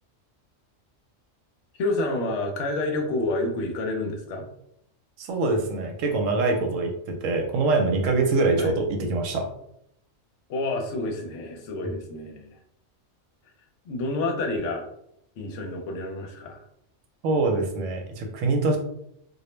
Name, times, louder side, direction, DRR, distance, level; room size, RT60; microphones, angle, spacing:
voice 1, 1.7-4.5 8.6-8.7 10.5-12.6 13.8-14.9 15.4-16.6, left 2 dB, 70° left, 2 dB, 0.9 m, -29 dB
voice 2, 5.2-9.5 17.2-18.8, right 3 dB, 80° right, 3 dB, 0.9 m, -24 dB
2.3 x 2.0 x 3.0 m, 0.74 s
omnidirectional pair, 1.3 m